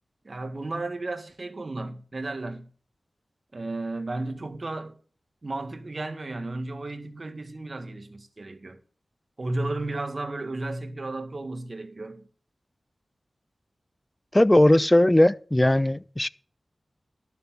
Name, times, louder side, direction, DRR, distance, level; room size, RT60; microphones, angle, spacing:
voice 1, 0.2-2.7 3.5-5.0 5.4-8.8 9.4-12.3, right 2 dB, 55° right, 1.8 m, -33 dB
voice 2, 14.3-16.3, left 1 dB, 20° left, 0.6 m, -19 dB
12.5 x 7.0 x 5.9 m
cardioid pair, 40°, 0 cm